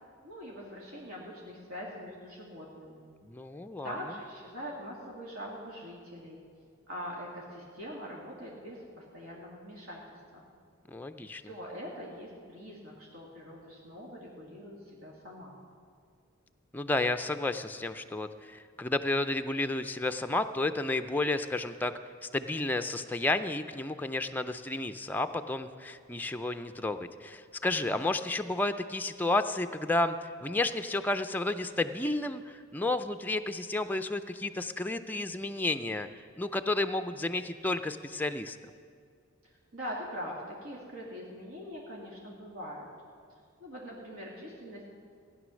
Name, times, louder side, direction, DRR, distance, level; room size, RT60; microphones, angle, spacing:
voice 1, 0.2-3.0 3.8-6.4 6.9-10.0 10.3-10.5 11.4-15.6 39.4-42.9 43.6-44.9, equal, 80° right, -4 dB, 2.2 m, -43 dB
voice 2, 3.2-3.9 10.9-11.4 16.7-21.9 22.2-36.1 36.4-38.6, left 2 dB, 10° left, 7 dB, 0.4 m, -31 dB
16.0 x 9.8 x 6.3 m, 2.2 s
head